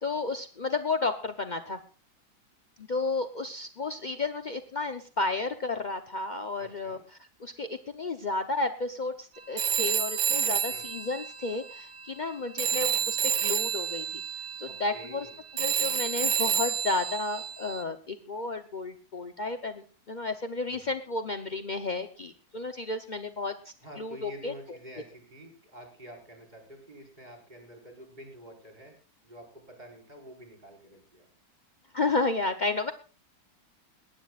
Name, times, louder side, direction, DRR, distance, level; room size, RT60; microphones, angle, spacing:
voice 1, 0.0-1.8 2.8-7.0 7.4-14.2 14.6-15.3 15.6-24.5 31.9-32.9, left 3 dB, 60° left, 7 dB, 0.4 m, -32 dB
voice 2, 6.6-7.0 10.7-10.9 14.6-15.4 23.8-28.9 29.2-31.3, equal, 20° right, 2 dB, 5.3 m, -48 dB
Telephone, 9.6-12.3 12.6-17.8, right 7 dB, 65° right, 1.9 m, -30 dB
20.0 x 18.0 x 2.5 m, 0.36 s
omnidirectional pair, 2.1 m